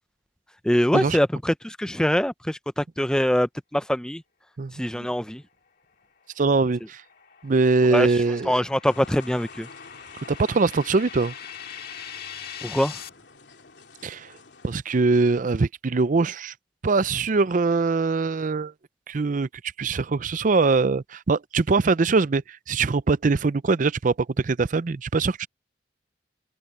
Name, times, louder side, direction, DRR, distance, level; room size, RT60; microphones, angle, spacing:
voice 1, 0.6-4.2 4.8-5.4 7.9-8.1 8.5-9.7 12.6-12.9, equal, 5° left, 0.5 m, -23 dB
voice 2, 4.6-5.1 6.4-7.0 7.4-8.6 10.3-11.3 14.0-14.3 14.6-16.5 16.8-18.7 19.1-19.5 19.8-25.5, right 3 dB, 50° right, 0.5 m, -22 dB
sound 1, 6.3-13.1, left 8 dB, 60° left, 1.9 m, -42 dB
sound 2, 8.8-14.8, left 4 dB, 75° left, 3.2 m, -49 dB
open air
head